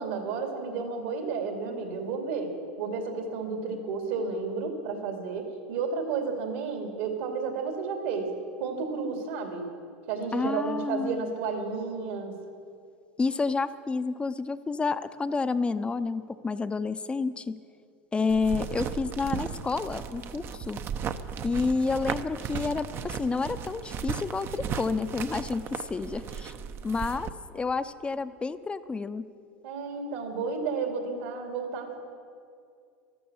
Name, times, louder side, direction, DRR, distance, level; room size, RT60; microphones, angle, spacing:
voice 1, 0.0-2.5 2.8-8.3 8.6-9.7 10.1-12.4 29.6-32.0, right 5 dB, 70° right, 3 dB, 2.7 m, -32 dB
voice 2, 10.3-11.2 13.2-17.6 18.1-20.8 21.4-26.5 26.8-29.2, left 4 dB, 15° left, 12 dB, 0.7 m, -29 dB
sound 1, 18.3-27.3, right 7 dB, 40° right, 0.8 m, -36 dB
13.5 x 12.5 x 7.2 m, 2.4 s
hypercardioid pair, 90°, 6 cm